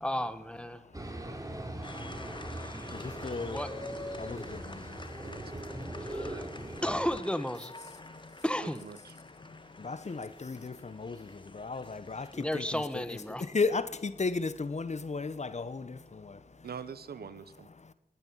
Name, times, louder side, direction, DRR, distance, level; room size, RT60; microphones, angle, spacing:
voice 1, 0.0-0.8 3.4-3.7 6.0-6.4 6.8-7.7 8.4-8.8 12.3-13.4, equal, 5° left, 1.6 m, -33 dB
voice 2, 0.7-3.6 4.1-6.8 7.8-8.4 9.1-16.7 17.8-17.9, left 4 dB, 45° left, 1.0 m, -37 dB
sound 1, 0.9-7.2, right 1 dB, 20° right, 3.3 m, -41 dB
sound 2, 1.8-13.5, left 2 dB, 30° left, 1.7 m, -48 dB
voice 3, 5.2-5.6 8.6-9.2 16.6-17.7, right 7 dB, 80° right, 0.8 m, -44 dB
21.5 x 9.0 x 5.6 m
cardioid pair, 40°, 16 cm